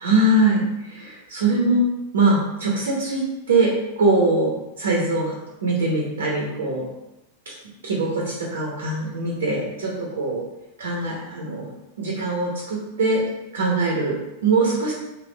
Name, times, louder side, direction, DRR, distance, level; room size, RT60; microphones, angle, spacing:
voice 1, 0.0-1.8 2.1-3.2 3.5-3.7 4.0-5.4 5.6-6.9 7.4-7.5 7.8-10.4 10.8-11.7 12.0-13.2 13.5-14.9, right 2 dB, 65° right, -3 dB, 0.9 m, -22 dB
3.5 x 3.1 x 4.0 m, 0.99 s
figure-of-eight pair, 90°, 0 cm